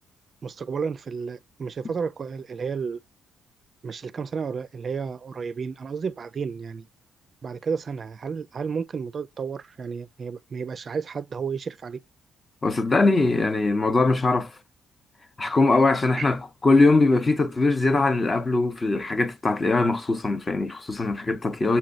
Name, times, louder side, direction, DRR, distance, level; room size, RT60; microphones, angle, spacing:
voice 1, 0.4-3.0 3.8-6.9 7.4-12.0 15.7-15.8 16.1-16.3, right 5 dB, 45° right, 0.3 m, -32 dB
voice 2, 12.6-14.5 15.4-21.8, left 3 dB, 30° left, 0.7 m, -21 dB
6.8 x 3.0 x 2.5 m
cardioid pair, 90°, 0 cm